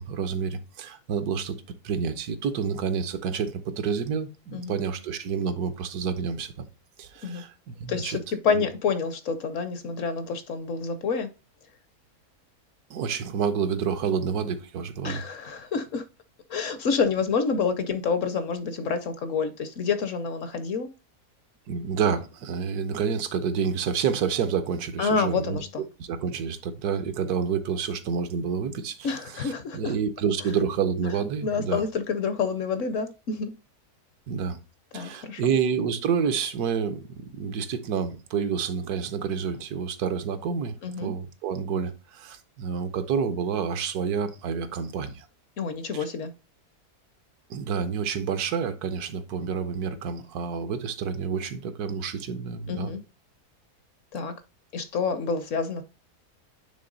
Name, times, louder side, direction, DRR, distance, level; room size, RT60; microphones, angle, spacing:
voice 1, 0.0-1.6 1.8-6.7 7.0-8.2 8.5-8.6 12.9-15.2 21.7-25.6 26.0-31.8 34.3-34.6 34.9-40.7 41.0-45.3 45.9-46.0 47.5-52.9, right 6 dB, 75° right, 1.2 m, -29 dB
voice 2, 7.9-11.3 15.0-16.0 16.5-20.9 25.0-25.8 29.0-29.9 31.4-33.5 34.9-35.5 40.8-41.1 45.6-46.3 52.7-53.0 54.1-54.3 54.7-55.8, left 5 dB, 60° left, 0.9 m, -28 dB
8.8 x 3.4 x 3.8 m
omnidirectional pair, 1.7 m